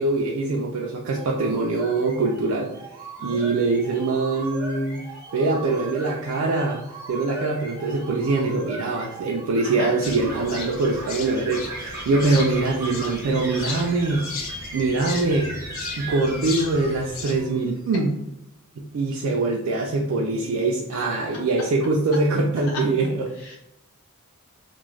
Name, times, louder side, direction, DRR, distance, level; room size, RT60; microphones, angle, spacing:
voice 1, 0.0-2.7 3.2-5.0 5.3-6.8 7.1-15.5 16.0-18.1 18.8-23.3, right 3 dB, 75° right, -2 dB, 0.3 m, -23 dB
sound 1, 1.1-17.6, right 2 dB, 10° right, 0.6 m, -38 dB
voice 2, 3.2-3.5 9.6-9.9 23.4-23.6, left 2 dB, 85° left, -1 dB, 0.7 m, -36 dB
sound 2, 10.0-17.4, left 4 dB, 60° left, 0.4 m, -36 dB
2.3 x 2.1 x 3.1 m, 0.81 s
head